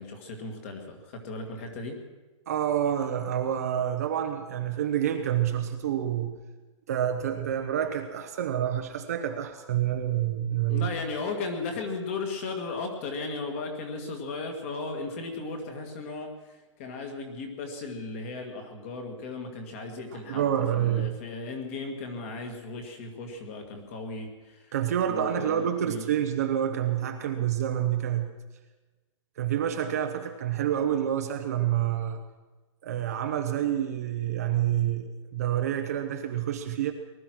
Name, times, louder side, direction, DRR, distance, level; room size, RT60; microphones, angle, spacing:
voice 1, 0.0-2.0 10.7-24.7 25.1-26.1, left 3 dB, 25° left, 4 dB, 1.7 m, -36 dB
voice 2, 2.5-6.4 6.9-10.9 20.1-21.2 24.7-28.3 29.4-32.2 32.8-36.9, right 10 dB, 30° right, 5 dB, 0.8 m, -28 dB
19.5 x 12.0 x 6.1 m, 1.2 s
hypercardioid pair, 180°, 16 cm